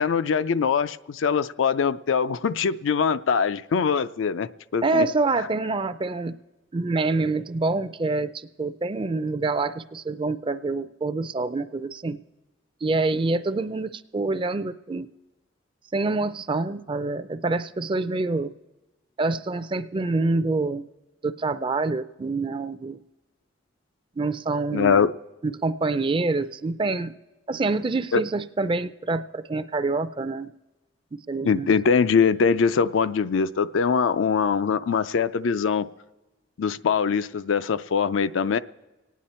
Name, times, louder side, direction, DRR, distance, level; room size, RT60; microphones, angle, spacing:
voice 1, 0.0-5.1 24.7-25.1 28.1-28.2 31.4-35.9 36.6-38.6, left 6 dB, 85° left, 0.4 m, -22 dB
voice 2, 4.8-6.3 6.7-12.2 12.8-15.1 15.9-18.5 19.2-20.8 21.2-23.0 24.2-25.1 25.4-27.1 27.5-30.5 31.3-31.7, right 3 dB, 25° right, 0.4 m, -26 dB
25.5 x 9.4 x 4.3 m
head